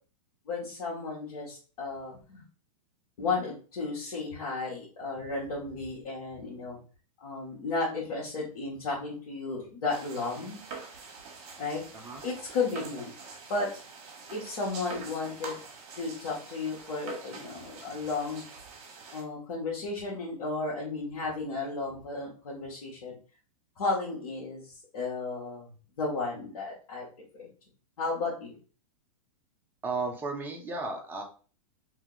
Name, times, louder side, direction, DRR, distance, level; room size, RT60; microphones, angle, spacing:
voice 1, 0.5-2.4 3.2-6.8 7.2-10.6 11.6-11.8 12.2-13.1 13.5-13.7 14.3-15.6 15.9-18.4 19.1-23.2 23.8-25.7 26.0-27.0 27.3-27.5 28.0-28.5, left 3 dB, 80° left, -6 dB, 1.4 m, -33 dB
sound 1, 9.9-19.2, right 5 dB, 45° right, 1.1 m, -45 dB
voice 2, 29.8-31.2, right 3 dB, 10° right, 1 dB, 0.6 m, -34 dB
2.9 x 2.8 x 3.8 m, 0.38 s
hypercardioid pair, 145°, 19 cm